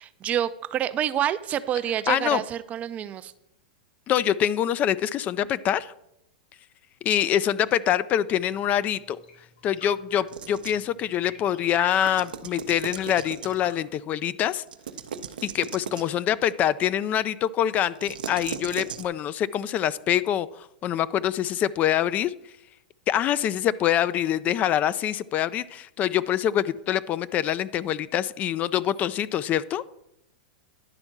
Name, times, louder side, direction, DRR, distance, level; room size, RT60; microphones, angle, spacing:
voice 1, 0.0-3.3, right 10 dB, 30° right, 14 dB, 0.5 m, -28 dB
voice 2, 2.1-2.4 4.1-5.9 7.0-9.2 9.6-14.6 15.4-22.3 23.1-29.8, left 10 dB, 35° left, 17 dB, 0.3 m, -25 dB
sound 1, 8.3-13.7, left 5 dB, 75° left, 2.5 m, -45 dB
sound 2, 10.3-10.9 11.9-13.8 14.7-16.2 17.9-19.1, right 7 dB, 80° right, 0.7 m, -37 dB
10.5 x 4.3 x 5.9 m, 0.82 s
hypercardioid pair, 110°, 5 cm